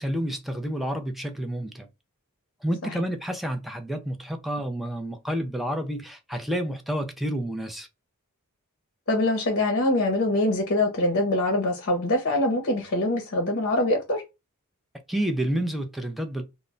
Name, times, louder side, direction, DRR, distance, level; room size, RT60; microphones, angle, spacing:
voice 1, 0.0-1.9 2.6-7.9 15.1-16.4, right 1 dB, ahead, 0.4 m, -29 dB
voice 2, 9.1-14.2, left 1 dB, 50° left, 0.6 m, -24 dB
2.1 x 2.0 x 3.7 m
head